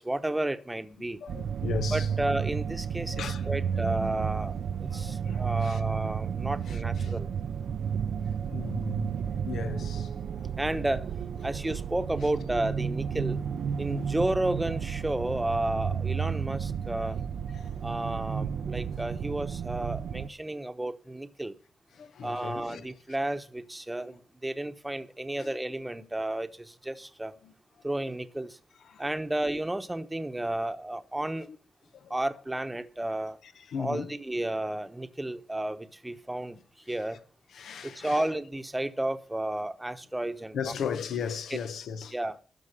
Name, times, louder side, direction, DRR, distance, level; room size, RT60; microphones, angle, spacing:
voice 1, 0.0-1.2 1.9-4.5 4.8-7.3 10.6-11.1 11.4-13.4 13.8-17.2 17.8-21.6 22.2-27.3 27.8-28.6 29.0-31.5 32.1-33.4 33.8-36.6 36.9-37.2 37.8-40.8 42.1-42.3, right 1 dB, 10° right, 1.0 m, -32 dB
voice 2, 1.2-2.1 3.1-3.8 4.8-5.8 6.7-7.1 8.5-10.4 17.0-17.1 17.5-18.0 21.9-22.9 25.4-25.6 27.4-27.5 28.8-29.0 31.5-31.6 31.9-32.2 33.4-34.1 37.5-38.2 40.5-42.2, left 6 dB, 85° left, 1.2 m, -37 dB
sound 1, 1.3-20.3, right 7 dB, 75° right, 0.6 m, -32 dB
12.5 x 4.8 x 8.2 m
cardioid pair, 95°, 0 cm